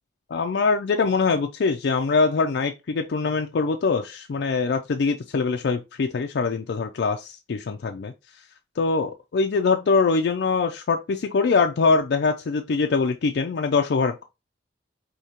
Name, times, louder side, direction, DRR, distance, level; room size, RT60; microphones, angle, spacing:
voice 1, 0.3-8.1 8.8-14.2, left 4 dB, 65° left, 0.4 m, -23 dB
4.8 x 2.8 x 2.8 m
head